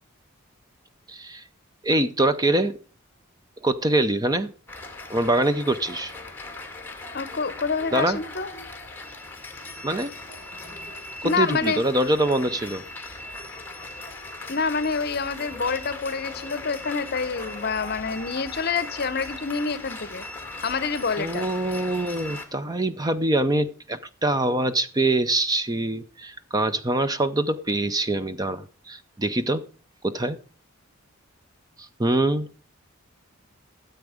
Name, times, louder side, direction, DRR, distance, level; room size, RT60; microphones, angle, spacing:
voice 1, 1.1-1.4 1.8-2.8 3.6-4.5 5.1-6.1 7.9-8.2 9.8-10.1 11.2-12.8 21.2-29.6 30.0-30.4 31.8-32.6, right 2 dB, 20° right, 0.5 m, -24 dB
sound 1, 4.7-22.5, left 2 dB, 10° left, 1.7 m, -39 dB
voice 2, 7.1-8.5 11.2-11.8 14.5-20.2 20.6-21.5, left 5 dB, 45° left, 0.8 m, -27 dB
13.5 x 8.0 x 4.9 m
head